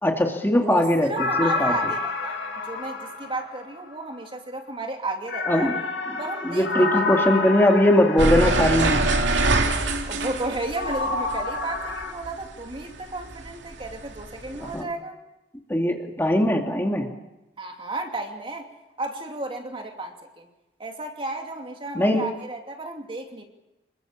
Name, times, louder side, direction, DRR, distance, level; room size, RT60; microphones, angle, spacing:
voice 1, 0.0-1.8 5.5-5.8 6.1-6.2 6.4-9.1 14.6-14.9 15.7-17.1 21.9-22.3, left 1 dB, 15° left, 2 dB, 2.4 m, -21 dB
voice 2, 0.6-2.4 2.7-5.7 6.2-7.0 10.1-15.1 17.6-18.7 19.0-20.5 20.8-23.5, right 2 dB, 30° right, 3 dB, 2.7 m, -33 dB
sound 1, 1.2-4.0 5.3-9.1 10.8-12.1, left 3 dB, 90° left, 6.7 m, -29 dB
sound 2, 8.2-12.8 13.2-14.8, right 2 dB, 90° right, 2.6 m, -24 dB
26.5 x 22.5 x 7.3 m, 0.97 s
head